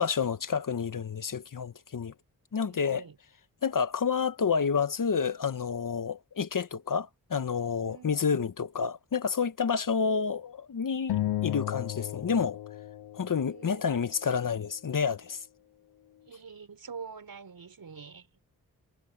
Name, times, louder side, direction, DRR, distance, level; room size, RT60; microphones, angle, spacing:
voice 1, 0.0-2.1 2.5-3.0 3.6-12.6 13.1-15.4, left 6 dB, 55° left, 1.4 m, -29 dB
voice 2, 2.5-3.2 7.8-8.5 13.3-14.0 16.2-18.4, right 5 dB, 60° right, 5.7 m, -46 dB
sound 1, 11.1-13.7, left 13 dB, 80° left, 0.7 m, -34 dB
cardioid pair, 45°, 39 cm